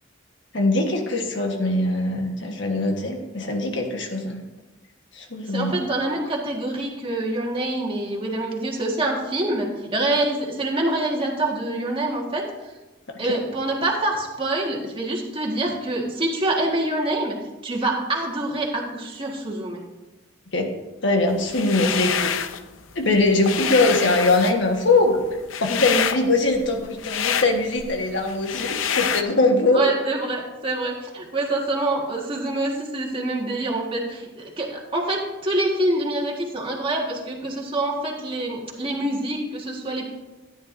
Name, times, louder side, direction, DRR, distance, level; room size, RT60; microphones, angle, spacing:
voice 1, 0.5-4.4 5.1-5.8 13.1-13.4 20.5-20.7 21.0-22.4 22.9-25.2 25.6-29.8, left 2 dB, 65° left, 3 dB, 1.4 m, -22 dB
voice 2, 5.5-12.5 13.2-17.4 17.6-19.8 29.7-40.1, right 2 dB, 25° right, -1 dB, 1.6 m, -26 dB
sound 1, 21.5-22.6 23.0-29.2, left 8 dB, 85° left, 0.6 m, -27 dB
13.0 x 9.9 x 2.6 m, 1.1 s
head